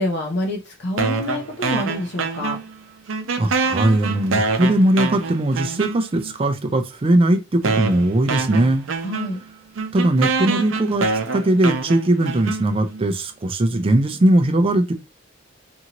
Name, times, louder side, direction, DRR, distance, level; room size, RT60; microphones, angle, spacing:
voice 1, 0.0-2.6 9.0-9.4, left 1 dB, 60° left, 0.6 m, -27 dB
sound 1, 1.0-2.8 3.1-6.3 7.1-7.2 7.6-13.0, right 4 dB, 90° right, 0.5 m, -25 dB
voice 2, 3.4-8.8 9.9-11.1 11.3-14.9, right 1 dB, 30° right, 0.4 m, -19 dB
2.7 x 2.5 x 2.8 m
head